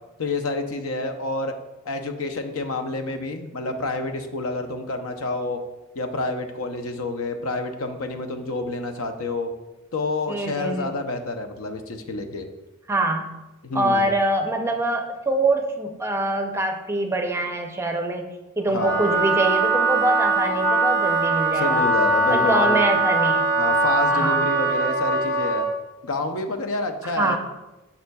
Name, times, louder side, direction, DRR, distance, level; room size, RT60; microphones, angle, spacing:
voice 1, 0.2-1.5 1.9-5.6 5.9-9.5 9.9-12.5 13.6-14.1 18.7-19.0 21.5-22.8 23.6-25.7 26.0-27.4, left 2 dB, 75° left, 6 dB, 0.7 m, -28 dB
voice 2, 10.3-10.9 12.9-13.3 13.7-18.3 18.6-21.8 22.3-23.4 24.1-24.4 27.2-27.4, right 2 dB, 10° right, 4 dB, 0.5 m, -24 dB
Wind instrument woodwind instrument, 18.7-25.7, right 2 dB, 10° left, 1.0 m, -21 dB
9.2 x 5.5 x 2.3 m, 1.1 s
head